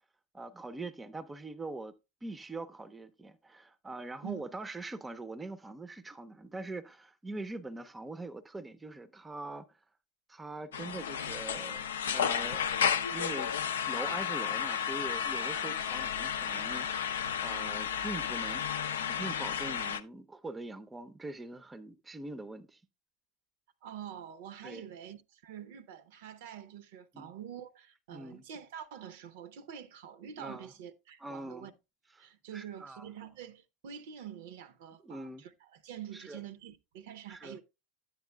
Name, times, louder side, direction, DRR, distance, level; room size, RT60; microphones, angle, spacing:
voice 1, 0.3-1.9 2.2-9.8 10.3-12.6 13.1-13.6 13.9-18.6 19.0-22.8 24.6-24.8 27.1-27.3 28.1-28.4 30.4-30.7 31.2-31.7 32.2-32.3 32.5-33.0 35.0-35.5 36.1-36.4 37.3-37.6, right 2 dB, 15° right, 0.5 m, -43 dB
sound 1, 10.7-20.0, left 8 dB, 85° left, 0.4 m, -32 dB
voice 2, 23.8-31.7 32.2-37.6, right 9 dB, 70° right, 0.6 m, -46 dB
10.0 x 8.1 x 2.2 m
hypercardioid pair, 90°, 0 cm